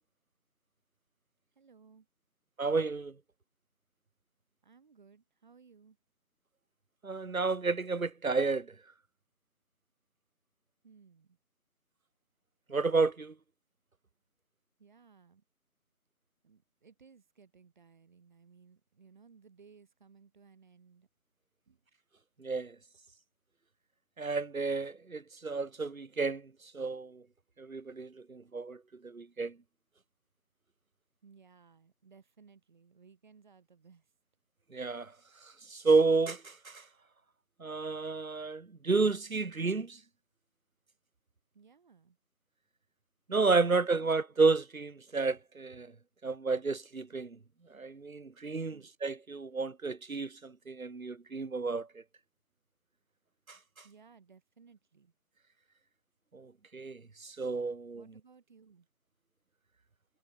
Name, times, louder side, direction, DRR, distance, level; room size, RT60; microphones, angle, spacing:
voice 1, 1.6-2.1 4.6-6.0 10.8-11.4 14.8-15.4 16.4-21.1 21.7-21.8 31.2-34.0 41.5-42.2 43.7-44.1 48.7-48.9 53.8-55.1 57.9-58.9, right 5 dB, 30° right, 4.7 m, -60 dB
voice 2, 2.6-3.1 7.0-8.7 12.7-13.3 22.4-22.7 24.2-26.4 26.7-27.2 27.6-29.5 34.7-35.1 35.7-36.8 37.6-40.0 43.3-45.9 46.2-47.4 47.7-51.9 53.5-53.6 56.3-58.0, right 4 dB, 65° right, 2.1 m, -31 dB
figure-of-eight pair, 165°, 45 cm